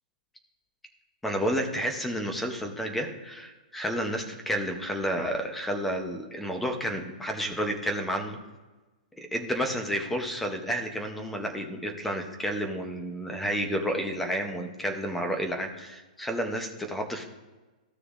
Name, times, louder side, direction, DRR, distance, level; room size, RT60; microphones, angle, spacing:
voice 1, 1.2-8.4 9.2-17.2, equal, 5° left, 4 dB, 0.6 m, -31 dB
14.5 x 6.5 x 2.4 m, 1.2 s
hypercardioid pair, 180°, 5 cm